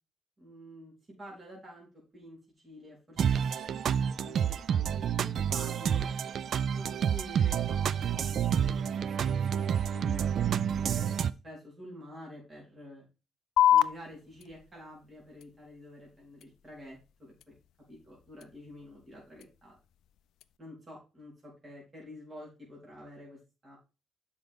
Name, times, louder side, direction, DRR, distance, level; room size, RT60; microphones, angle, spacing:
voice 1, 0.4-1.9 2.1-3.4 4.2-6.1 6.8-10.3 10.7-13.0 13.7-17.5 17.9-19.8 20.6-23.8, left 1 dB, 30° right, -4 dB, 4.0 m, -49 dB
sound 1, 3.2-11.3, right 8 dB, 60° right, 0.4 m, -29 dB
sound 2, 13.6-20.6, left 11 dB, 80° left, 0.4 m, -32 dB
7.9 x 5.5 x 3.6 m, 0.30 s
cardioid pair, 90°, 0 cm